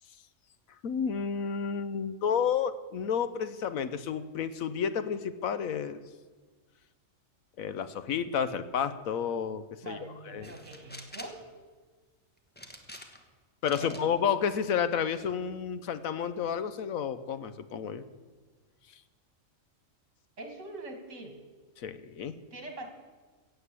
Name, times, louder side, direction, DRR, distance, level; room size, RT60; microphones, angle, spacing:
voice 1, 0.8-6.0 7.6-10.5 13.6-18.0 21.8-22.4, left 7 dB, 85° left, 13 dB, 1.2 m, -31 dB
voice 2, 9.8-11.4 13.8-14.1 20.4-21.4 22.5-22.9, right 2 dB, 70° right, 6 dB, 2.3 m, -43 dB
sound 1, 10.4-11.4 12.6-13.3 13.7-14.0 14.6-15.2, left 1 dB, 10° left, 1.2 m, -47 dB
16.0 x 7.9 x 8.3 m, 1.4 s
omnidirectional pair, 1.4 m